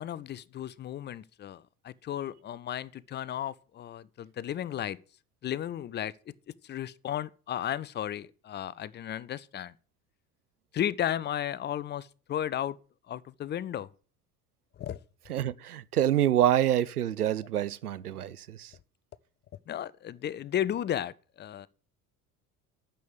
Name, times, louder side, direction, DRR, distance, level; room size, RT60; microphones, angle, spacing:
voice 1, 0.0-5.0 5.4-6.1 6.6-9.7 10.7-12.8 13.1-13.9 14.8-15.0 19.7-21.7, left 10 dB, 25° left, 0.5 m, -34 dB
voice 2, 15.3-18.7, right 11 dB, 85° right, 0.6 m, -27 dB
9.3 x 6.9 x 7.5 m
figure-of-eight pair, 60°, 44 cm